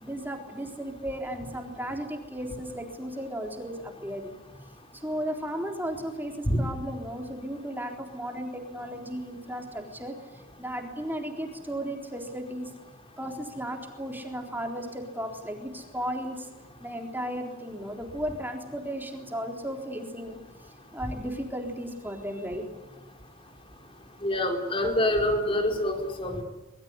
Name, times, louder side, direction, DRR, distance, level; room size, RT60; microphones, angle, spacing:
voice 1, 0.0-4.3 5.0-10.2 10.6-12.7 13.2-16.4 16.8-20.4 20.9-22.7, equal, 10° right, 3 dB, 3.8 m, -35 dB
voice 2, 24.2-26.4, left 1 dB, 25° left, 4 dB, 4.0 m, -26 dB
25.0 x 21.5 x 9.7 m, 1.0 s
head